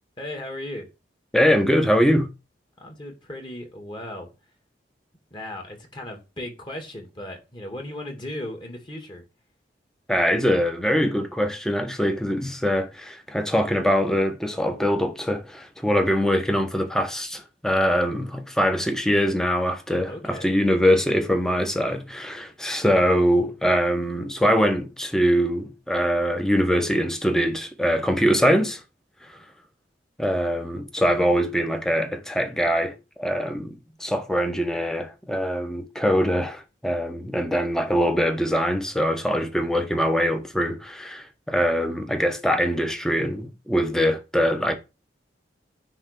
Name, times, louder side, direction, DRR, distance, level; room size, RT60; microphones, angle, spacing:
voice 1, 0.2-0.9 2.8-4.3 5.3-9.2 20.1-20.6, left 1 dB, 25° left, 2.5 m, -36 dB
voice 2, 1.3-2.3 10.1-28.8 29.2-29.3 30.2-44.8, equal, 5° left, 1.3 m, -23 dB
10.0 x 3.5 x 6.8 m
head